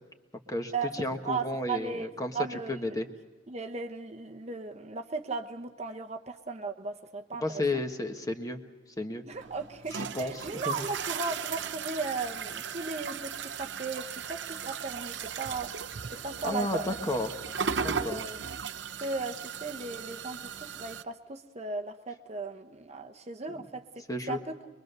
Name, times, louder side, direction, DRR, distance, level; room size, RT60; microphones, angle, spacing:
voice 1, 0.5-2.3 2.7-3.1 7.4-8.6 9.0-9.2 9.9-10.8 16.4-17.3 17.8-18.2 24.1-24.4, left 1 dB, 15° left, 5 dB, 1.4 m, -32 dB
voice 2, 1.2-2.1 2.3-2.9 3.5-7.6 9.2-17.0 18.0-18.4 19.0-24.6, right 4 dB, 35° right, 5 dB, 0.9 m, -36 dB
sound 1, 9.3-21.0, right 6 dB, 60° right, 0.8 m, -37 dB
23.5 x 23.0 x 6.8 m, 1.3 s
head